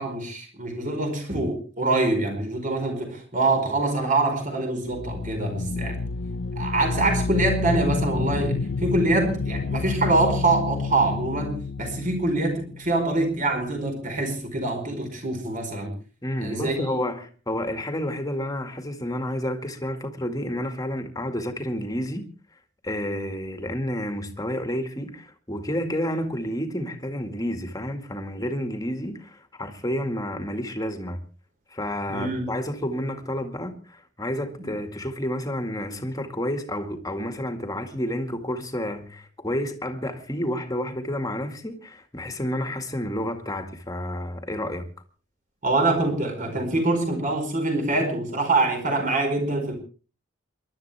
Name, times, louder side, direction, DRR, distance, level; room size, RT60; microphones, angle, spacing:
voice 1, 0.0-6.0 6.6-15.9 16.4-17.0 32.1-32.6 34.6-34.7 45.6-49.8, right 2 dB, 40° right, 4.8 m, -25 dB
sound 1, 4.9-13.6, left 4 dB, 80° left, 0.7 m, -29 dB
voice 2, 16.2-22.3 22.8-31.2 31.7-44.9, equal, 20° left, 2.0 m, -30 dB
28.0 x 12.0 x 3.4 m
head